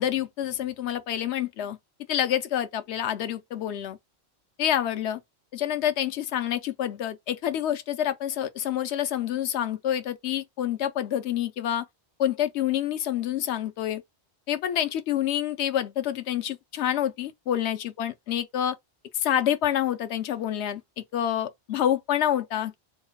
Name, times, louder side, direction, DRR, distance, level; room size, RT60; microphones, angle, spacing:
voice 1, 0.0-1.8 2.1-4.0 4.6-5.2 5.5-11.8 12.2-14.0 14.5-18.8 19.1-22.8, left 10 dB, 85° left, 0.9 m, -27 dB
3.1 x 2.2 x 4.2 m
omnidirectional pair, 1.1 m